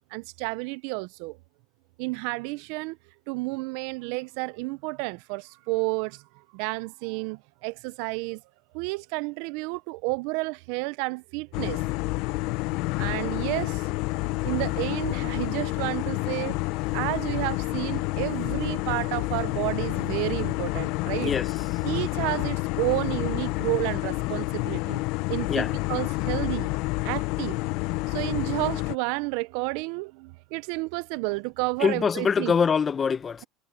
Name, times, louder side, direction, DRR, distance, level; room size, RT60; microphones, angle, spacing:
voice 1, 0.1-1.4 2.0-3.0 3.3-6.2 6.5-8.4 8.7-11.8 13.0-13.8 14.4-16.6 16.9-21.3 21.8-25.0 25.3-26.7 27.0-27.6 28.1-32.5, right 26 dB, 70° right, 0.6 m, -31 dB
sound 1, 11.5-29.0, left 22 dB, 70° left, 0.7 m, -29 dB
voice 2, 21.2-21.9 25.5-25.7 31.8-33.4, left 6 dB, 30° left, 1.0 m, -25 dB
supercardioid pair, 95°, 0 cm